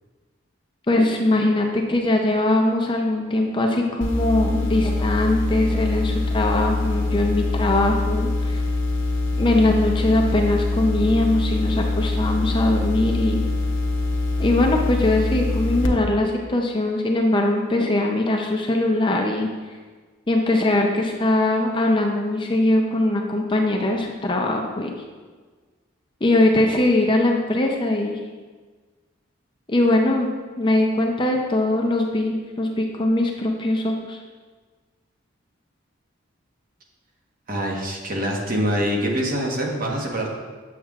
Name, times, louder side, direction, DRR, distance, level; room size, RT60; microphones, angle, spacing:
voice 1, 0.9-8.6 9.4-13.4 14.4-19.5 20.3-24.9 26.2-28.2 29.7-34.2, left 1 dB, 25° left, 2 dB, 0.5 m, -21 dB
sound 1, 4.0-15.9, left 2 dB, 70° left, 0.7 m, -24 dB
voice 2, 37.5-40.3, equal, 45° right, -1 dB, 1.1 m, -25 dB
7.3 x 7.2 x 2.4 m, 1.4 s
head